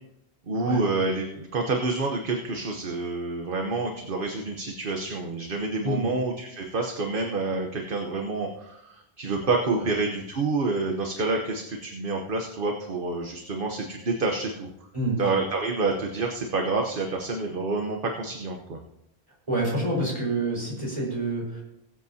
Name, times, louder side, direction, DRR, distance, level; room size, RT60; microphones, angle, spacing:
voice 1, 0.5-14.7 15.2-18.8, right 3 dB, 55° right, 2 dB, 1.2 m, -28 dB
voice 2, 14.9-15.3 19.5-21.6, right 1 dB, 30° right, -4 dB, 4.5 m, -27 dB
20.5 x 8.1 x 2.8 m, 0.83 s
omnidirectional pair, 1.1 m